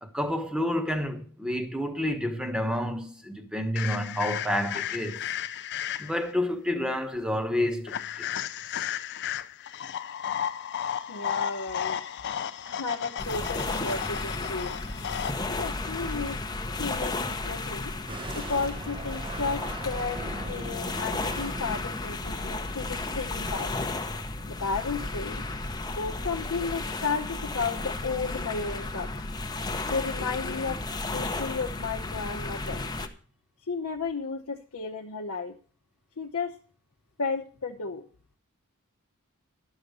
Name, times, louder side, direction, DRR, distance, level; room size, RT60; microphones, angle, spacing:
voice 1, 0.0-5.2 6.0-8.3 8.7-8.9, left 1 dB, 5° right, 1.1 m, -29 dB
sound 1, 3.8-6.3 7.9-15.3, left 9 dB, 50° left, 0.5 m, -34 dB
voice 2, 11.1-12.0 12.6-14.8 15.4-16.4 16.8-17.9 18.3-20.2 20.5-23.7 24.5-25.4 26.0-29.3 29.8-32.8 33.7-35.5 36.2-36.5 37.2-38.0, left 4 dB, 70° left, 0.9 m, -33 dB
sound 2, 13.2-33.1, left 2 dB, 20° left, 0.8 m, -33 dB
sound 3, 18.1-23.7, right 2 dB, 25° right, 0.8 m, -41 dB
11.0 x 6.5 x 6.6 m
head